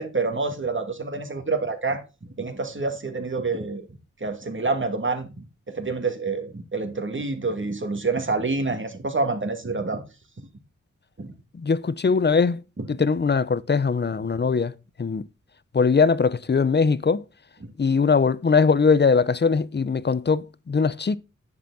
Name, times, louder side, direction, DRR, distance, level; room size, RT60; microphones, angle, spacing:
voice 1, 0.0-2.0 2.4-3.9 4.2-10.0 11.2-11.3 12.8-12.9 17.6-17.7, right 3 dB, 40° right, 2.3 m, -27 dB
voice 2, 11.6-12.6 12.9-14.7 15.0-15.2 15.7-17.2 17.8-21.2, left 5 dB, 35° left, 0.7 m, -21 dB
9.5 x 7.3 x 4.1 m
cardioid pair, 50°, 31 cm